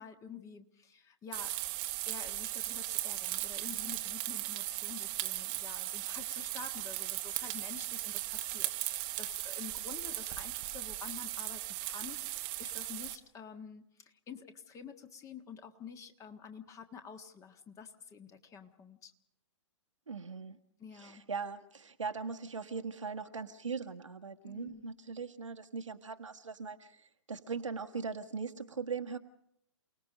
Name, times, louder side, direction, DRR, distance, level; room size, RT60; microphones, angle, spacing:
voice 1, 0.0-1.6 2.0-19.1 20.8-21.3 24.4-24.9, left 6 dB, 20° left, 8 dB, 1.5 m, -49 dB
sound 1, 1.3-13.2, right 17 dB, 30° right, 1.1 m, -37 dB
voice 2, 20.1-20.6 21.0-29.2, right 5 dB, 80° right, 7 dB, 1.5 m, -40 dB
28.5 x 19.0 x 5.2 m, 0.71 s
figure-of-eight pair, 120°, 16 cm